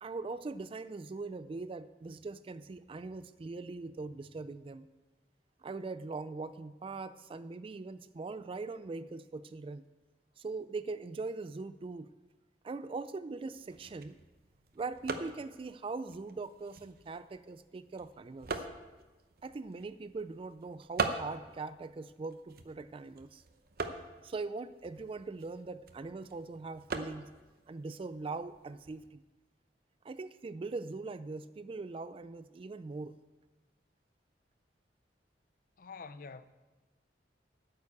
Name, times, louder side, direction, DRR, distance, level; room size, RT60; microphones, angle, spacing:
voice 1, 0.0-4.9 5.6-9.8 10.4-12.1 12.6-14.2 14.8-18.6 19.4-23.4 24.2-27.3 27.7-29.2 30.0-33.2, right 3 dB, 30° right, 0.3 m, -41 dB
sound 1, 13.5-29.1, right 3 dB, 55° right, 0.8 m, -43 dB
voice 2, 35.8-36.4, left 4 dB, 50° left, 0.5 m, -46 dB
9.4 x 6.8 x 8.5 m
head